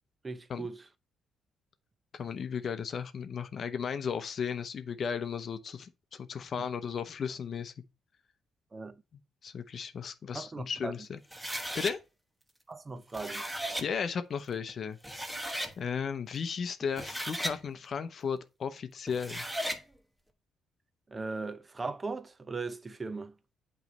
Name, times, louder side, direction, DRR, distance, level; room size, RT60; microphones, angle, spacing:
voice 1, 0.2-0.9 6.6-6.7 8.7-9.0 10.3-10.9 12.7-13.4 21.1-23.3, right 3 dB, 25° right, 0.7 m, -38 dB
voice 2, 2.1-7.7 9.4-12.0 13.8-15.0 15.8-19.4, left 6 dB, 50° left, 0.7 m, -35 dB
sound 1, 11.3-11.9 13.0-13.9 14.7-14.8 15.0-15.7 16.8-17.6 19.1-19.8, equal, 5° right, 1.1 m, -36 dB
8.1 x 3.2 x 5.2 m
cardioid pair, 90°, 0 cm